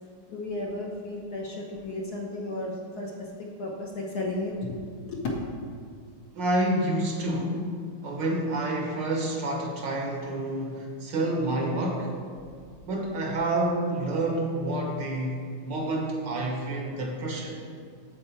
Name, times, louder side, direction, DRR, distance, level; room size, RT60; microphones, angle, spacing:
voice 1, 0.3-3.1 3.4-5.4, left 2 dB, 60° left, -2 dB, 1.2 m, -33 dB
voice 2, 6.3-7.7 8.0-12.1 12.9-17.6, right 1 dB, 60° right, 1 dB, 1.6 m, -28 dB
13.5 x 4.5 x 4.3 m, 2.1 s
omnidirectional pair, 2.4 m